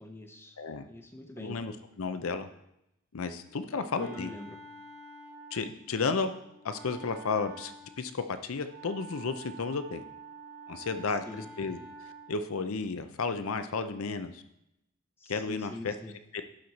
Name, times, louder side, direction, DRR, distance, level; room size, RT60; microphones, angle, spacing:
voice 1, 0.0-0.6 0.9-1.6 3.7-4.6 11.1-11.5 15.2-16.2, left 1 dB, 10° left, 5 dB, 0.7 m, -45 dB
voice 2, 0.6-0.9 1.4-2.5 3.1-4.3 5.5-6.3 6.6-7.7 8.0-10.0 10.7-11.8 12.3-14.4 15.3-15.9 16.3-16.4, left 4 dB, 85° left, 10 dB, 0.6 m, -33 dB
Wind instrument woodwind instrument, 3.4-12.5, right 3 dB, 45° right, 0.9 m, -49 dB
11.5 x 4.5 x 4.1 m, 0.83 s
head